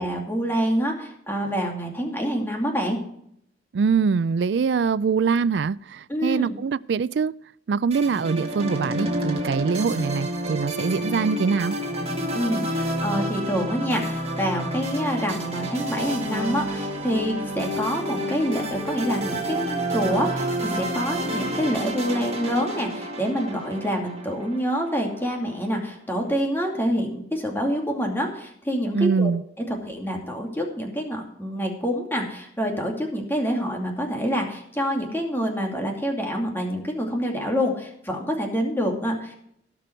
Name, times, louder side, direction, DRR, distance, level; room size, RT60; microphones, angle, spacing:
voice 1, 0.0-3.0 6.1-6.5 12.3-29.3 29.7-39.3, equal, 15° left, 2.6 m, -27 dB
voice 2, 3.7-7.3 7.7-11.8 28.9-29.4, right 5 dB, 80° right, 0.4 m, -23 dB
sound 1, 7.9-25.3, right 1 dB, 35° right, 2.2 m, -29 dB
17.5 x 6.1 x 4.5 m
head